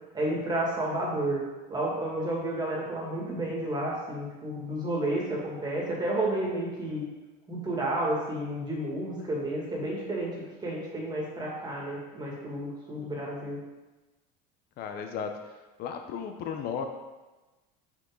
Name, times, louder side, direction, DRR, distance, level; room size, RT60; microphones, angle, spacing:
voice 1, 0.1-1.4 1.7-7.0 7.5-10.3 10.6-13.6, right 1 dB, 20° right, -3 dB, 2.2 m, -31 dB
voice 2, 14.8-15.3 15.8-16.9, left 7 dB, 50° left, 5 dB, 0.8 m, -34 dB
6.3 x 6.1 x 3.8 m, 1.1 s
supercardioid pair, 125°, 20 cm